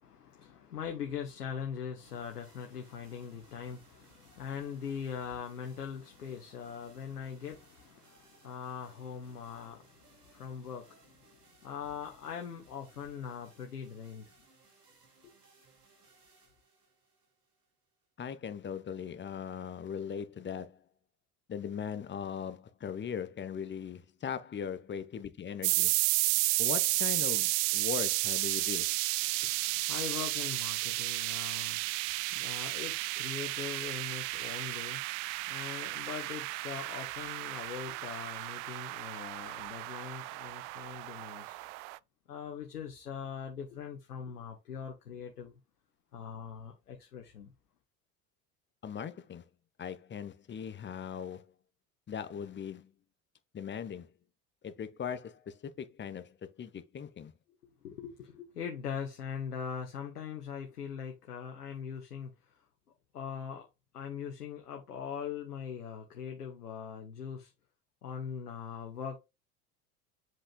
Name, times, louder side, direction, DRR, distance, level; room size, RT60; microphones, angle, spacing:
voice 1, 0.0-14.3 15.2-15.3 29.2-41.6 42.3-45.6 46.1-47.5 57.6-62.6 63.1-63.7 63.9-67.5 68.0-69.2, left 7 dB, 80° left, 1.3 m, -42 dB
sound 1, 2.0-18.1, right 4 dB, 85° right, 2.9 m, -64 dB
voice 2, 18.2-20.8 21.5-25.9 26.6-29.0 48.8-49.4 49.8-51.5 52.1-52.9 53.5-54.1 54.6-57.3, left 7 dB, 25° left, 1.0 m, -39 dB
sound 2, 25.6-42.0, right 22 dB, 50° right, 0.5 m, -33 dB
7.7 x 6.2 x 2.3 m
figure-of-eight pair, 70°, 46 cm